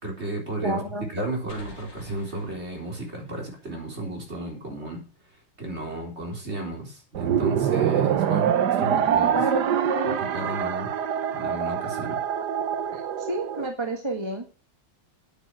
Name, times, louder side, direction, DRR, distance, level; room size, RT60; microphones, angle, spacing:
voice 1, 0.0-0.8 1.1-5.0 5.6-9.4 10.1-10.9 11.3-12.2, right 1 dB, 35° right, 0 dB, 4.2 m, -33 dB
voice 2, 0.6-1.0 9.3-10.2 12.9-14.4, right 2 dB, 15° right, 3 dB, 1.4 m, -29 dB
sound 1, 1.5-5.0, left 3 dB, 50° left, 2.8 m, -50 dB
sound 2, 7.1-13.7, right 9 dB, 65° right, 1.4 m, -25 dB
10.0 x 8.9 x 6.3 m, 0.35 s
omnidirectional pair, 2.1 m